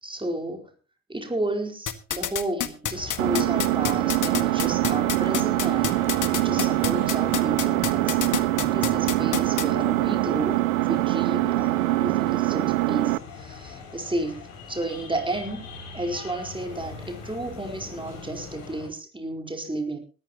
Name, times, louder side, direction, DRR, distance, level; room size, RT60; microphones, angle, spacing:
voice 1, 0.0-0.7 1.1-8.3 8.6-10.6 10.9-15.6 15.9-20.0, right 1 dB, 10° right, 3 dB, 4.6 m, -32 dB
sound 1, 1.9-9.6, left 10 dB, 50° left, 1.8 m, -27 dB
sound 2, 2.9-18.9, left 4 dB, 65° left, 6.4 m, -41 dB
Engine, 3.2-13.2, right 19 dB, 75° right, 0.7 m, -24 dB
20.5 x 14.0 x 3.0 m, 0.35 s
figure-of-eight pair, 45°, 40 cm